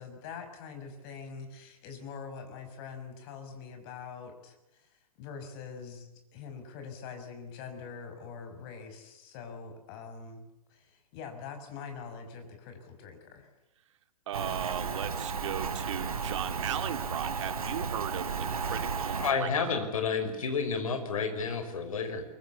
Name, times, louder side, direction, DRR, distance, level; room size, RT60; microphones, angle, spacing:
voice 1, 0.0-4.9 5.2-10.4 10.7-13.5, left 5 dB, 40° left, 6 dB, 6.0 m, -44 dB
voice 2, 14.3-19.8, right 10 dB, 55° right, 9 dB, 2.6 m, -37 dB
Rain, 14.3-19.3, right 5 dB, 75° right, 3.5 m, -34 dB
voice 3, 19.2-22.2, left 5 dB, 65° left, 8 dB, 6.0 m, -30 dB
23.5 x 23.5 x 8.5 m, 0.93 s
figure-of-eight pair, 115°, 19 cm